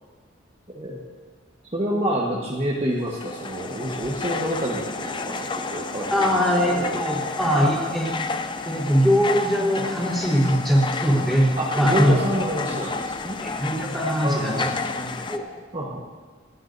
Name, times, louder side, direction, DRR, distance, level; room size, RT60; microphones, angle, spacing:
voice 1, 0.7-1.0 1.7-7.0 7.5-7.7 11.6-13.4 14.2-15.2 15.7-16.0, right 1 dB, 30° right, -4 dB, 1.3 m, -28 dB
sound 1, 3.0-15.4, left 4 dB, 25° left, 0.5 m, -31 dB
voice 2, 6.1-8.1 8.6-11.5 11.7-12.1 13.4-14.7 15.2-15.4, equal, ahead, -5 dB, 4.0 m, -21 dB
29.0 x 9.8 x 2.7 m, 1.4 s
head